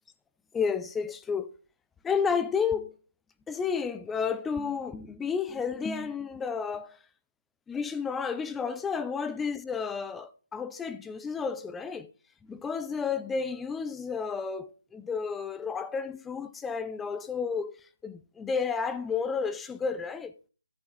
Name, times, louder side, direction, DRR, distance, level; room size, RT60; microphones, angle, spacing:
voice 1, 0.5-1.5 2.0-2.9 3.5-7.0 7.7-12.1 12.4-17.7 18.0-20.3, left 5 dB, 5° left, 0.4 m, -31 dB
13.5 x 6.3 x 4.0 m
figure-of-eight pair, 165°, 0 cm